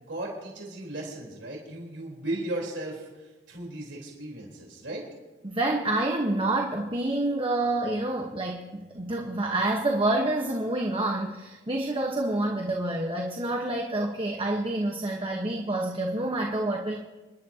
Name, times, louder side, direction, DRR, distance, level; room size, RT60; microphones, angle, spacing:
voice 1, 0.0-5.0, right 1 dB, 85° right, -2 dB, 3.8 m, -36 dB
voice 2, 5.4-17.0, right 2 dB, 30° right, 0 dB, 1.1 m, -28 dB
28.0 x 11.5 x 2.8 m, 1.2 s
head